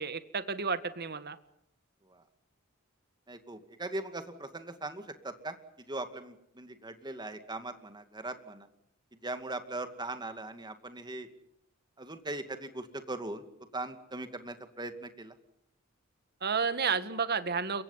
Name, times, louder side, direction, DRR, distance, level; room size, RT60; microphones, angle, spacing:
voice 1, 0.0-1.4 16.4-17.8, right 5 dB, 50° right, 12 dB, 1.7 m, -31 dB
voice 2, 3.3-5.6 5.9-8.7 9.2-11.3 12.0-13.4 13.7-15.3, right 2 dB, 20° right, 8 dB, 2.3 m, -40 dB
29.0 x 24.0 x 5.7 m, 0.78 s
head